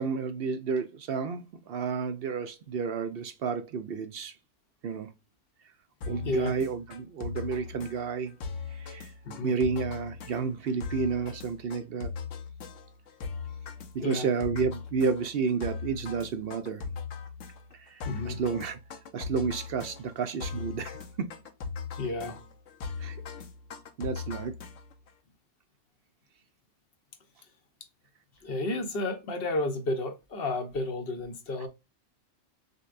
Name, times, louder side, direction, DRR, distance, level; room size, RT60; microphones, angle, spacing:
voice 1, 0.0-4.4 4.8-5.1 6.1-8.4 8.7-9.1 9.4-12.1 13.9-16.9 17.7-18.8 19.1-21.3 23.0-23.2 24.0-24.5 31.6-31.7, right 5 dB, 65° right, 0.7 m, -31 dB
sound 1, 6.0-25.1, left 5 dB, 90° left, 1.1 m, -39 dB
voice 2, 9.2-9.5 14.0-14.3 18.0-18.4 22.0-22.4 28.4-31.7, left 2 dB, 55° left, 0.9 m, -31 dB
6.4 x 2.2 x 2.4 m
omnidirectional pair, 1.2 m